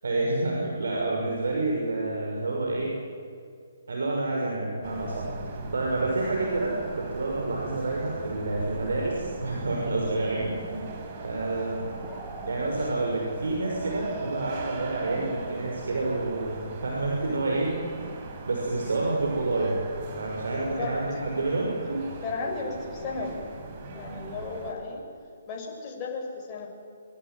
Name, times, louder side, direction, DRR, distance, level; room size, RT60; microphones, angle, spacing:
voice 1, 0.0-2.9 3.9-10.8 11.2-12.0 12.5-17.8 18.4-19.8 20.2-22.0, right 2 dB, 65° right, -1 dB, 6.3 m, -28 dB
sound 1, 4.8-24.7, right 3 dB, 35° right, 4.9 m, -40 dB
sound 2, 12.0-12.6, right 2 dB, 10° right, 4.4 m, -42 dB
voice 2, 20.5-21.0 22.2-23.4 23.9-25.1 25.5-26.7, left 4 dB, 25° left, 0 dB, 7.3 m, -34 dB
25.0 x 25.0 x 9.6 m, 2.3 s
figure-of-eight pair, 135°, 0 cm